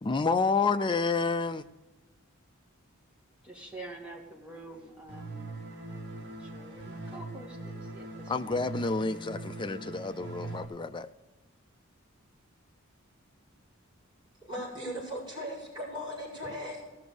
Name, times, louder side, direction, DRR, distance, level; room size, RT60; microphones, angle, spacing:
voice 1, 0.0-1.6 8.3-11.1, left 4 dB, 25° left, 0.5 m, -29 dB
voice 2, 3.4-5.5 5.9-8.7, right 2 dB, 5° right, 2.4 m, -47 dB
sound 1, 5.1-10.6, right 2 dB, 55° right, 2.6 m, -41 dB
voice 3, 14.4-16.8, equal, 25° right, 5.2 m, -38 dB
17.0 x 6.2 x 6.8 m
head